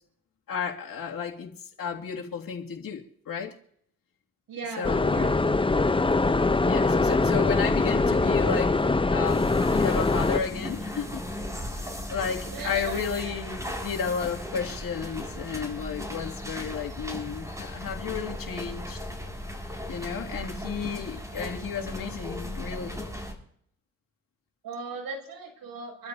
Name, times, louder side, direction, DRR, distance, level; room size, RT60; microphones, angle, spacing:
voice 1, 0.5-1.5 1.8-3.5 4.8-5.3 6.7-11.4 12.1-19.0 19.9-23.0, left 6 dB, 60° left, 2.5 m, -33 dB
voice 2, 4.5-5.4 12.5-13.4 24.6-26.1, right 4 dB, 65° right, 7.0 m, -38 dB
sound 1, 4.8-10.4, left 3 dB, 15° left, 0.8 m, -23 dB
sound 2, 9.2-23.3, left 1 dB, 10° right, 5.8 m, -36 dB
27.0 x 12.5 x 2.8 m
hypercardioid pair, 45°, 38 cm